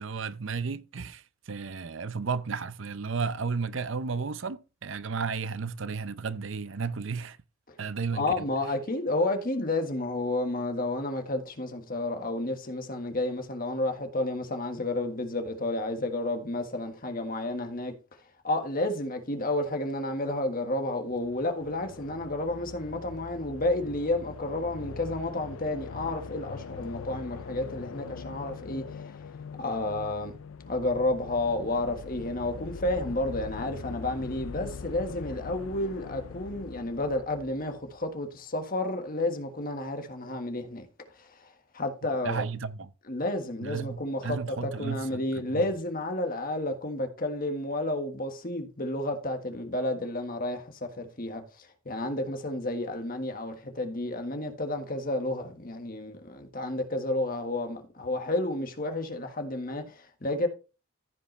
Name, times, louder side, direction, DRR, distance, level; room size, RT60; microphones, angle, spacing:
voice 1, 0.0-7.4 7.8-8.5 42.2-42.9 43.6-45.6, right 5 dB, 60° right, 0.6 m, -33 dB
voice 2, 8.1-17.9 18.4-29.3 29.6-30.3 30.7-40.9 41.1-42.4 43.1-60.5, left 2 dB, 40° left, 1.5 m, -31 dB
sound 1, 21.1-38.1, left 5 dB, 70° left, 0.4 m, -42 dB
15.0 x 5.4 x 3.2 m
head